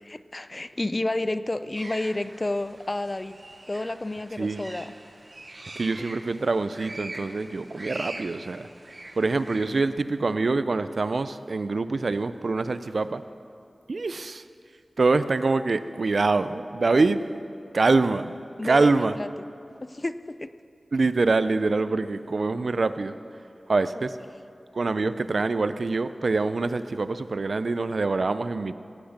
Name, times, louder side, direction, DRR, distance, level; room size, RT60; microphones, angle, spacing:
voice 1, 0.0-3.4 3.7-4.9 18.6-19.3 19.8-20.5 23.9-24.0, left 2 dB, 35° left, 13 dB, 0.4 m, -30 dB
sound 1, 1.8-9.8, right 2 dB, 40° right, 1.0 m, -43 dB
voice 2, 5.7-8.7 9.2-13.2 13.9-14.4 15.0-17.2 17.7-18.3 18.6-19.2 20.9-23.2 23.7-24.2 24.7-28.7, right 3 dB, 70° right, 12 dB, 0.4 m, -25 dB
17.0 x 8.7 x 5.8 m, 2.5 s
wide cardioid pair, 70°, 0 cm